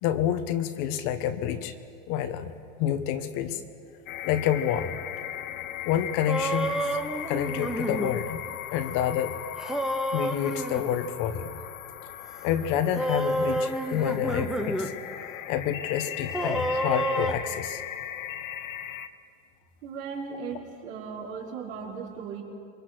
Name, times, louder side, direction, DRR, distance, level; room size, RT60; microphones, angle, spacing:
voice 1, 0.0-1.7 2.1-2.5 2.8-3.6 4.2-4.9 5.8-6.7 7.3-8.4 8.7-9.4 10.1-11.6 12.4-14.9 15.5-17.8, left 10 dB, 45° left, 9 dB, 1.4 m, -28 dB
sound 1, 4.1-19.1, left 11 dB, 90° left, 1.2 m, -38 dB
sound 2, 6.3-8.1 9.6-10.9 13.0-14.9 15.3-15.4 16.3-17.3, right 1 dB, ahead, 0.9 m, -29 dB
voice 2, 19.8-22.4, right 5 dB, 75° right, -2 dB, 5.3 m, -37 dB
27.0 x 23.0 x 6.2 m, 2.5 s
supercardioid pair, 150°, 40 cm